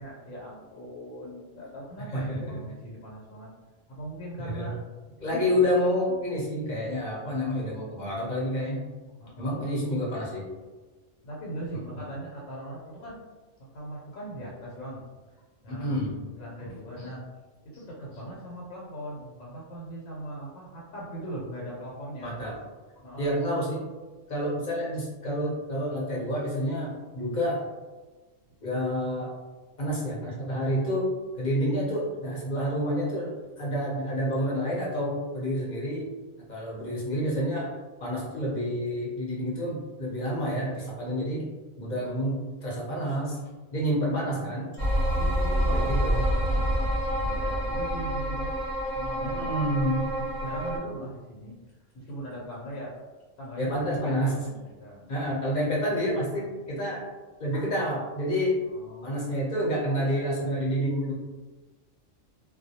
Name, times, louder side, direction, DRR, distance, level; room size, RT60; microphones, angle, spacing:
voice 1, 0.0-3.5 3.9-4.8 5.2-5.7 9.2-9.6 11.2-13.2 13.6-15.0 15.6-16.0 16.3-17.2 17.6-22.3 23.0-23.3 43.8-44.2 45.1-48.5 48.9-51.5 51.9-52.9 53.4-55.1 58.7-59.2, right 1 dB, 85° left, -4 dB, 1.0 m, -40 dB
voice 2, 2.1-2.6 4.4-4.7 5.2-8.8 9.4-10.5 11.7-12.1 15.7-16.2 16.6-16.7 17.0-17.1 22.2-22.5 23.2-23.8 24.3-27.6 28.6-29.3 29.8-36.1 36.5-41.4 41.8-43.4 43.7-44.7 45.7-46.2 49.2-50.1 53.6-54.4 55.1-57.1 57.4-58.6 59.0-61.1, equal, 45° left, -5 dB, 0.7 m, -29 dB
sound 1, 44.8-50.8, equal, 45° right, 0.6 m, -27 dB
2.3 x 2.1 x 2.7 m, 1.3 s
omnidirectional pair, 1.3 m